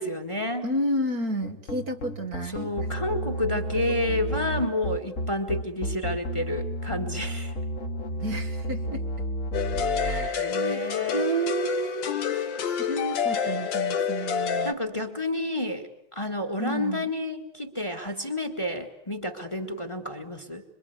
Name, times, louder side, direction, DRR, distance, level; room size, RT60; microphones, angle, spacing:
voice 1, 0.0-0.7 2.4-7.5 9.8-10.0 10.4-11.2 12.6-12.7 14.6-20.6, left 1 dB, 15° left, 7 dB, 2.0 m, -30 dB
voice 2, 0.6-2.7 8.2-9.0 10.0-10.8 11.1-14.7 16.6-17.1, right 2 dB, 50° right, 5 dB, 2.1 m, -31 dB
sound 1, 1.4-10.3, equal, 40° left, 2.1 m, -31 dB
sound 2, 9.5-14.7, left 7 dB, 70° left, 1.9 m, -28 dB
26.5 x 24.5 x 8.2 m, 0.72 s
omnidirectional pair, 2.1 m